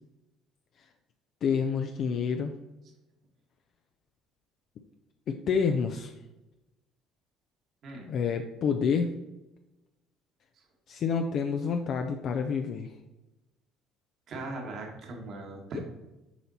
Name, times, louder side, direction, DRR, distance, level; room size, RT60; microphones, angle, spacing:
voice 1, 1.4-2.5 5.5-6.1 8.1-9.1 10.9-12.9, left 6 dB, 60° left, 5 dB, 0.5 m, -28 dB
voice 2, 7.8-8.1 14.3-15.8, right 2 dB, 60° right, 1 dB, 1.7 m, -39 dB
7.1 x 4.4 x 4.2 m, 0.99 s
supercardioid pair, 80°, 0 cm